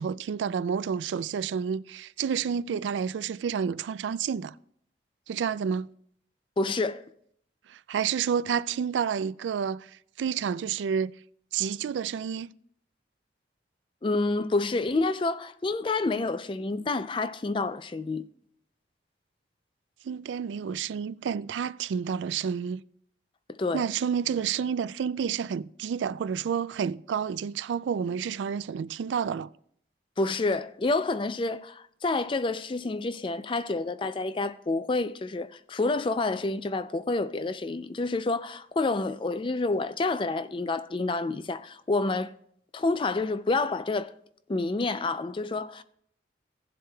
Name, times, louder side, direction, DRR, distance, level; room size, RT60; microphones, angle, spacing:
voice 1, 0.0-4.5 5.3-5.9 7.7-9.9 10.2-11.1 11.5-12.5 20.0-22.8 23.7-29.5, right 7 dB, 85° right, 0.3 m, -29 dB
voice 2, 6.6-7.0 14.0-18.3 23.5-23.8 30.2-42.3 42.7-44.1 44.5-45.8, left 3 dB, 30° left, 0.4 m, -28 dB
17.0 x 7.6 x 2.3 m
head